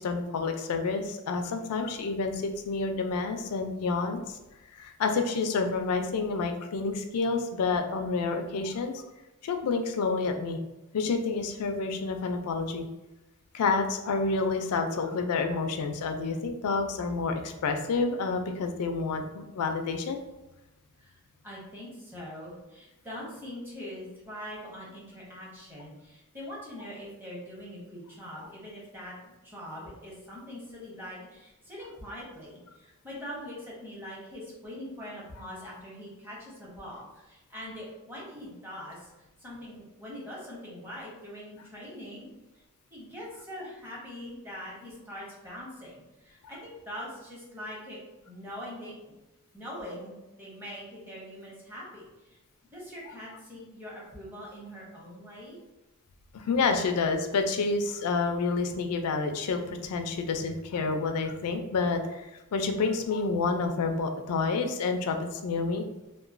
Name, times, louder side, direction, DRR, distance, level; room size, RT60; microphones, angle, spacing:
voice 1, 0.0-4.4 4.7-9.0 9.4-10.6 10.9-12.8 13.5-20.2 56.3-65.9, left 4 dB, 75° left, 5 dB, 0.4 m, -29 dB
voice 2, 21.0-42.3 42.9-48.0 48.3-48.9 49.5-52.4 52.7-55.6, equal, 10° right, -5 dB, 0.8 m, -43 dB
2.9 x 2.1 x 2.5 m, 1.0 s
head